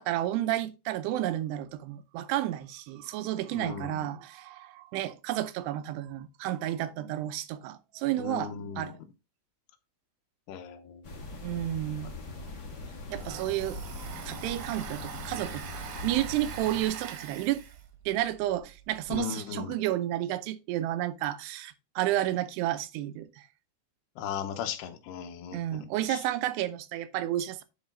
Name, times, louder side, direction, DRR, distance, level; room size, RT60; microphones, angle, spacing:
voice 1, 0.0-9.0 11.4-12.1 13.1-13.8 14.3-15.6 16.0-17.6 18.1-23.4 25.5-27.6, right 13 dB, 85° right, 2.8 m, -31 dB
voice 2, 3.5-4.1 8.2-8.9 10.5-11.1 19.1-19.8 24.2-25.8 26.1-26.2, left 8 dB, 80° left, 2.9 m, -37 dB
sound 1, 11.0-16.8, left 2 dB, 65° left, 1.0 m, -41 dB
Domestic sounds home sounds, 12.2-12.3 12.6-19.2, right 8 dB, 70° right, 2.3 m, -43 dB
9.7 x 4.0 x 3.8 m
omnidirectional pair, 4.7 m